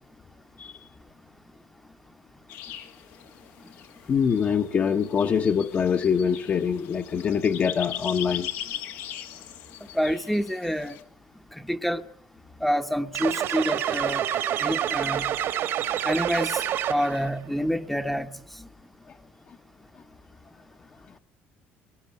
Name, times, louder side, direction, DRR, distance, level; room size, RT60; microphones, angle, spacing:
sound 1, 2.5-11.0, left 11 dB, 85° left, 2.4 m, -40 dB
voice 1, 4.1-8.5 19.5-19.6, left 7 dB, 40° left, 1.2 m, -24 dB
voice 2, 9.9-11.0 11.5-12.0 12.6-14.2 14.6-15.3 16.0-16.6 16.9-18.3 18.6-18.7, equal, 5° left, 1.0 m, -27 dB
sound 2, 13.1-17.3, right 10 dB, 65° right, 2.1 m, -27 dB
23.5 x 20.0 x 9.2 m
cardioid pair, 105°, 4 cm